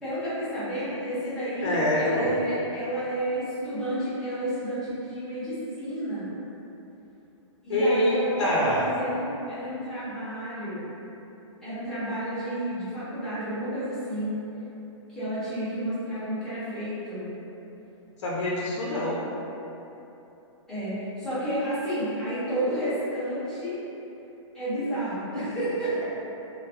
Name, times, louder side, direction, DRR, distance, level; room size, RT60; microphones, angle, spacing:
voice 1, 0.0-6.3 7.6-10.8 11.6-14.3 15.1-17.3 20.7-23.8 24.5-26.0, right 1 dB, 5° left, -15 dB, 0.8 m, -31 dB
voice 2, 1.6-2.3 7.7-8.9 18.2-19.2, left 1 dB, 65° left, -5 dB, 0.6 m, -25 dB
2.5 x 2.0 x 3.4 m, 3.0 s
hypercardioid pair, 165°, 16 cm